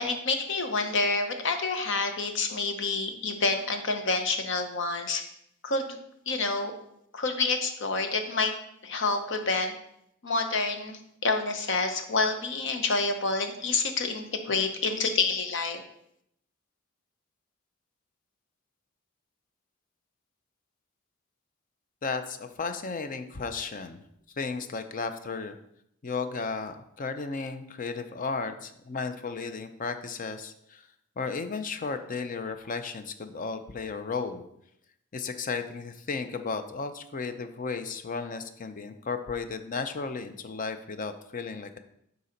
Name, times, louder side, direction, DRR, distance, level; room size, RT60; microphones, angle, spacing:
voice 1, 0.0-5.2 5.6-6.0 6.3-6.7 7.1-8.5 8.8-9.7 10.2-15.8, left 3 dB, 65° left, 6 dB, 0.9 m, -28 dB
voice 2, 22.0-24.1 24.4-25.6 26.0-30.8 31.2-34.5 35.1-41.8, left 4 dB, 40° left, 9 dB, 0.5 m, -34 dB
6.9 x 4.0 x 5.1 m, 0.75 s
head